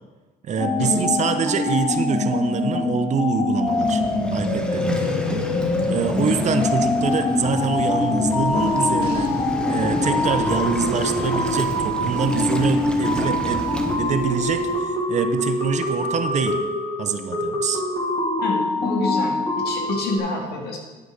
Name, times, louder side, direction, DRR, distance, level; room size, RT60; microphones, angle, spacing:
voice 1, 0.4-4.0 4.3-5.5 5.9-9.3 9.7-13.6 14.0-16.6 17.0-17.8, right 6 dB, 45° right, 8 dB, 0.8 m, -25 dB
sound 1, 0.6-20.2, left 2 dB, 30° left, 2.5 m, -24 dB
Waves surf, 3.7-14.0, equal, 5° left, 1.1 m, -31 dB
sound 2, 8.2-14.8, right 3 dB, 85° right, 1.6 m, -37 dB
voice 2, 18.4-19.4 19.6-20.8, left 2 dB, 70° left, 0 dB, 2.3 m, -27 dB
10.5 x 4.9 x 6.6 m, 1.3 s
cardioid pair, 110°, 17 cm